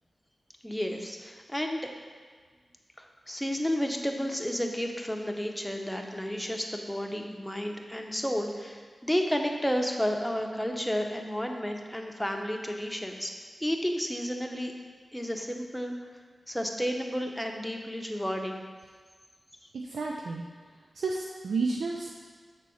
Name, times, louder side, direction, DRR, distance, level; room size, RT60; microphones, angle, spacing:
voice 1, 0.6-1.9 3.0-13.3 13.6-14.7 15.1-15.9 16.5-18.6, equal, 5° left, 2 dB, 0.9 m, -31 dB
voice 2, 19.8-20.4 20.9-22.1, right 3 dB, 90° right, -1 dB, 0.5 m, -31 dB
6.9 x 4.1 x 6.3 m, 1.5 s
cardioid pair, 60°, 0 cm